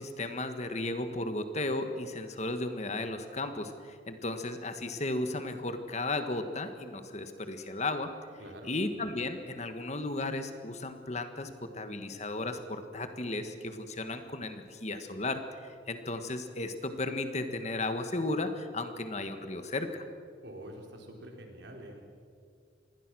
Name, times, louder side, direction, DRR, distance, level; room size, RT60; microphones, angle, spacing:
voice 1, 0.0-8.1 8.6-20.0, left 2 dB, 35° left, 8 dB, 1.6 m, -35 dB
voice 2, 8.4-8.7 20.4-22.0, right 1 dB, 70° right, 1 dB, 4.5 m, -46 dB
27.5 x 20.5 x 6.3 m, 2.2 s
head